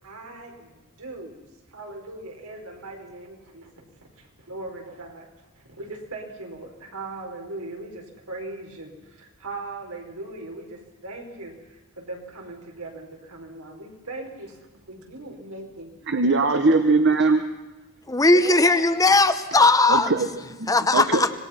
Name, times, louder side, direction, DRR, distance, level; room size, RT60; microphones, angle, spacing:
voice 1, 0.0-1.4 1.7-5.3 5.5-14.6 14.9-15.9 16.4-16.6 18.3-18.9, right 2 dB, 80° right, 2 dB, 4.9 m, -39 dB
voice 2, 16.1-17.4 19.9-20.3 20.6-21.2, right 3 dB, 55° right, 7 dB, 1.1 m, -20 dB
voice 3, 18.1-20.1 20.7-21.3, left 3 dB, 15° left, 10 dB, 0.9 m, -18 dB
25.5 x 20.0 x 5.9 m, 1.2 s
head